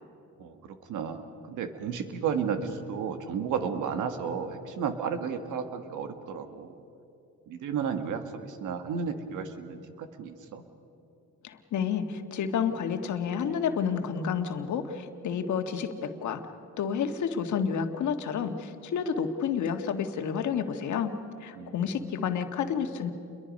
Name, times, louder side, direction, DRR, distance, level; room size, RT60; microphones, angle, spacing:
voice 1, 0.4-6.8 7.5-10.6 21.6-21.9, right 6 dB, 85° right, 8 dB, 1.8 m, -33 dB
voice 2, 11.4-16.4 16.8-21.1 21.4-23.1, left 7 dB, 70° left, 6 dB, 1.7 m, -30 dB
29.5 x 22.5 x 5.4 m, 2.8 s
cardioid pair, 90°, 30 cm